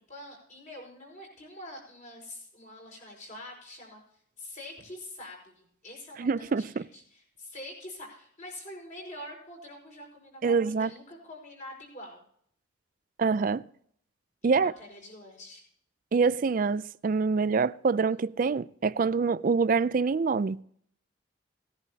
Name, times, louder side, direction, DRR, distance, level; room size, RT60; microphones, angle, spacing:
voice 1, 0.1-4.0 4.4-12.2 14.4-15.6, left 1 dB, 40° left, 5.0 m, -45 dB
voice 2, 6.2-6.8 10.4-10.9 13.2-13.6 14.4-14.7 16.1-20.6, right 4 dB, 45° right, 0.3 m, -25 dB
18.5 x 10.5 x 2.8 m
head